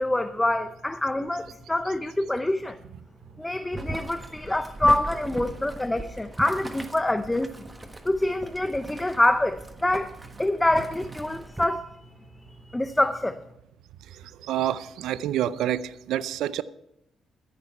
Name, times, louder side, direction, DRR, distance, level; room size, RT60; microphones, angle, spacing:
voice 1, 0.0-2.8 3.4-7.7 8.0-10.1 10.4-11.9 12.7-13.4, left 1 dB, 10° left, 0.6 m, -25 dB
Boiling, 3.7-11.7, right 2 dB, 15° right, 1.4 m, -39 dB
voice 2, 14.4-16.6, right 11 dB, 85° right, 0.5 m, -27 dB
14.0 x 10.0 x 5.5 m
cardioid pair, 90°, 0 cm